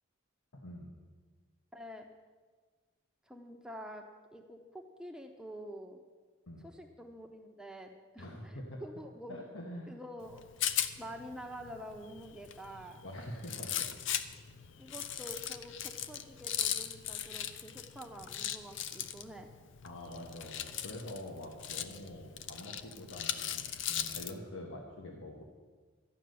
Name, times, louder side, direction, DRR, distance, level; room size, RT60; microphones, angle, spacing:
voice 1, 0.5-0.9 6.5-6.6 8.2-8.8 9.3-10.0 13.0-13.9 19.8-25.4, left 1 dB, 80° left, -1 dB, 1.5 m, -45 dB
voice 2, 1.7-2.1 3.3-4.0 4.3-6.0 6.6-9.4 9.9-10.4 11.0-13.0 14.8-19.5, equal, 5° right, 3 dB, 0.8 m, -47 dB
Rattle, 10.2-24.4, left 10 dB, 65° left, 0.6 m, -39 dB
13.0 x 6.5 x 9.4 m, 1.4 s
head